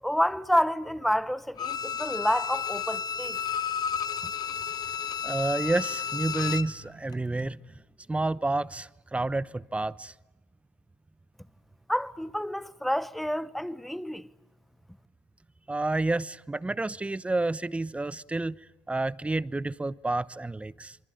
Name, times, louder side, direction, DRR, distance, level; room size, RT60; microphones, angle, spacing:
voice 1, 0.0-3.4 4.2-4.3 11.9-14.3, equal, ahead, 1.2 m, -29 dB
Bowed string instrument, 1.6-6.8 7.1-7.2, left 7 dB, 50° left, 0.9 m, -32 dB
voice 2, 5.2-7.7 8.1-10.1 15.7-18.6 18.9-21.0, right 2 dB, 15° right, 0.9 m, -29 dB
27.0 x 23.5 x 9.4 m
supercardioid pair, 80°, 9 cm